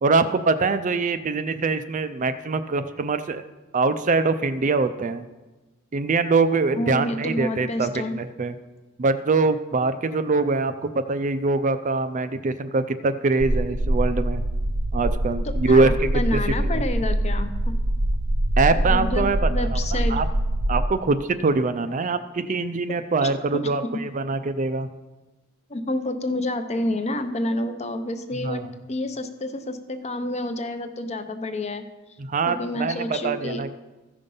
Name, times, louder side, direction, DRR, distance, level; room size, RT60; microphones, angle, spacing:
voice 1, 0.0-3.4 3.7-5.3 5.9-8.5 9.0-14.4 14.9-16.8 18.6-20.3 20.7-24.9 28.4-28.7 32.2-33.8, right 3 dB, 35° right, 11 dB, 0.4 m, -23 dB
voice 2, 6.8-8.1 15.4-17.7 18.7-19.2 19.5-20.2 23.2-23.7 25.7-28.6 28.9-31.8 32.5-33.6, left 1 dB, 30° left, 8 dB, 0.7 m, -29 dB
sound 1, 13.4-20.8, right 1 dB, 65° right, 0.8 m, -24 dB
14.5 x 5.3 x 5.5 m, 1.2 s
head